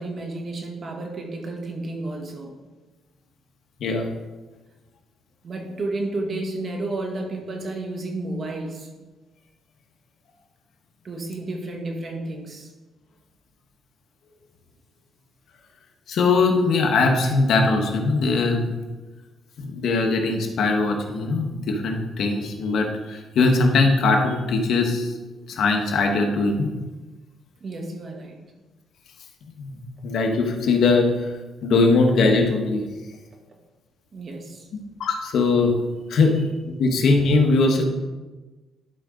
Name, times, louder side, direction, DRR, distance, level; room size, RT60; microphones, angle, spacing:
voice 1, 0.0-2.5 5.4-8.9 11.0-12.7 27.6-28.5 34.1-34.7, right 2 dB, 45° right, 2 dB, 1.7 m, -31 dB
voice 2, 16.1-18.7 19.6-25.1 25.5-26.7 29.6-29.8 30.0-31.3 31.6-32.8 35.0-35.7 36.1-36.4 36.6-37.8, left 3 dB, 70° left, 2 dB, 1.4 m, -20 dB
11.5 x 5.1 x 3.8 m, 1.2 s
cardioid pair, 90°, 0 cm